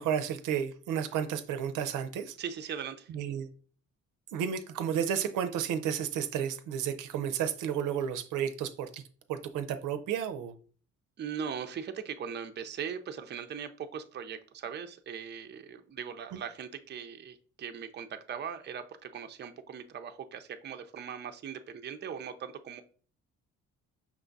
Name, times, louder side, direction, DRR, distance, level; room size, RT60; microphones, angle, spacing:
voice 1, 0.0-2.3 3.1-3.5 4.3-9.0 9.3-10.5 16.3-16.4, right 8 dB, 85° right, 0.5 m, -32 dB
voice 2, 2.4-3.1 11.2-22.8, right 7 dB, 35° right, 0.5 m, -40 dB
5.9 x 2.3 x 3.9 m
cardioid pair, 90°, 30 cm